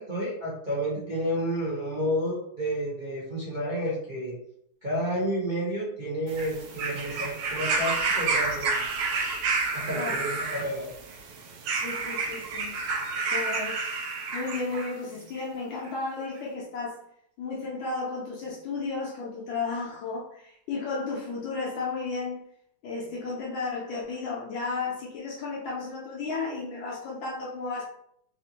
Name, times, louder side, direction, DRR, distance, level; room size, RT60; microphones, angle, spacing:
voice 1, 0.0-4.3 4.8-8.9 9.7-10.9, equal, 40° right, -7 dB, 0.7 m, -30 dB
sound 1, 6.3-14.9 15.9-16.0, right 4 dB, 85° right, 1.4 m, -30 dB
voice 2, 11.8-12.8 13.3-17.0 17.4-22.4 22.8-27.8, left 4 dB, 75° left, -4 dB, 1.4 m, -33 dB
4.2 x 2.5 x 2.8 m, 0.71 s
omnidirectional pair, 2.2 m